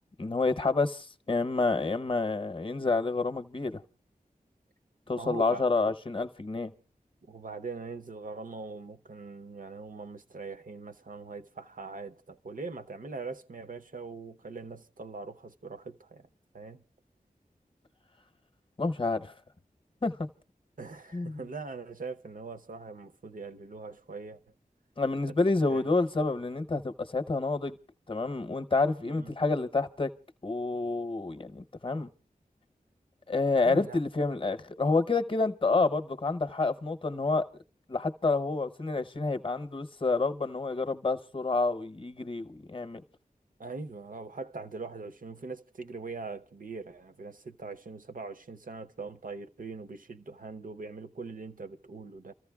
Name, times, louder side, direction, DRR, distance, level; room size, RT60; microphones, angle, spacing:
voice 1, 0.2-3.8 5.1-6.7 18.8-19.3 20.0-20.3 21.1-21.4 25.0-27.8 28.1-30.1 30.4-32.1 33.3-37.5 37.9-43.0, left 3 dB, 35° left, 0.8 m, -28 dB
voice 2, 5.1-5.9 7.3-16.3 16.5-16.8 20.8-24.4 25.7-25.8 29.0-29.3 33.6-34.0 43.6-52.3, right 4 dB, 65° right, 0.7 m, -42 dB
30.0 x 14.0 x 2.3 m
wide cardioid pair, 65°, 15 cm